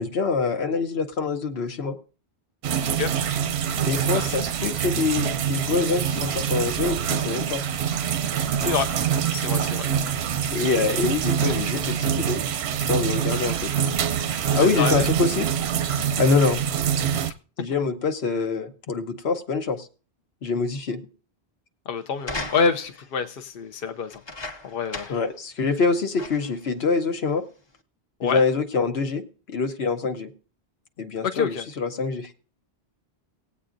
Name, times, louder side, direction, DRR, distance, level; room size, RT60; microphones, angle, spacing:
voice 1, 0.0-2.0 3.8-7.6 10.5-12.4 12.9-13.7 14.3-15.5 16.2-16.6 17.6-19.9 20.4-21.0 25.1-27.4 28.2-30.3 31.0-32.3, left 4 dB, 80° left, 7 dB, 1.2 m, -25 dB
sound 1, 2.6-17.3, right 8 dB, 90° right, 0.9 m, -25 dB
voice 2, 9.3-9.9 14.5-15.1 21.9-24.2 24.6-25.1 28.2-28.4 31.2-31.7, left 5 dB, 65° left, 7 dB, 0.9 m, -27 dB
sound 2, 22.2-23.0 24.1-25.3 25.7-25.8 26.2-26.6 27.4-27.5, left 2 dB, 30° left, 0.8 m, -36 dB
19.5 x 8.4 x 2.5 m, 0.38 s
omnidirectional pair, 1.1 m